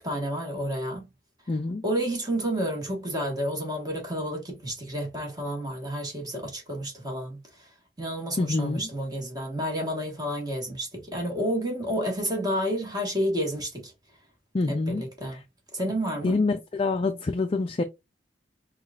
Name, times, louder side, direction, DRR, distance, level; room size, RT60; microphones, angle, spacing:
voice 1, 0.0-1.0 1.8-7.7 8.0-13.9 14.7-15.4 15.7-16.4, equal, 20° right, 1.4 m, -30 dB
voice 2, 1.5-1.8 8.4-8.8 14.5-15.1 15.3-15.4 16.2-17.8, left 3 dB, 30° left, 0.4 m, -26 dB
5.6 x 2.4 x 2.4 m
head